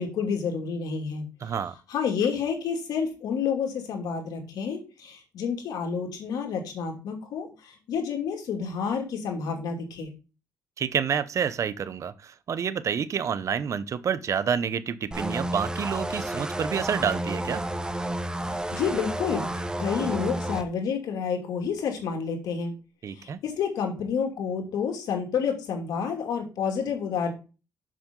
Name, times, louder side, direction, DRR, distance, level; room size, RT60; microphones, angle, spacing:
voice 1, 0.0-1.5 1.9-10.1 18.3-22.7 23.1-27.3, left 6 dB, 80° left, 3 dB, 2.7 m, -29 dB
voice 2, 1.4-1.7 10.8-17.6 23.0-23.4, right 7 dB, 55° right, 13 dB, 0.8 m, -28 dB
sound 1, 15.1-20.6, right 1 dB, 10° right, 1.0 m, -31 dB
7.6 x 6.7 x 3.8 m, 0.31 s
cardioid pair, 100°, 6 cm